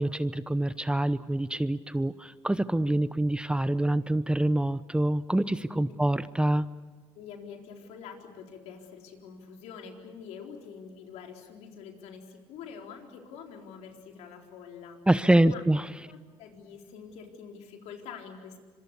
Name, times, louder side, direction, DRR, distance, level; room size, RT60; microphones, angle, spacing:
voice 1, 0.0-6.7 15.1-15.9, right 1 dB, 10° right, 14 dB, 0.8 m, -26 dB
voice 2, 7.1-15.0 15.5-15.6 16.1-18.6, left 6 dB, 80° left, 2 dB, 4.1 m, -45 dB
26.0 x 23.0 x 8.4 m, 1.4 s
cardioid pair, 85°, 11 cm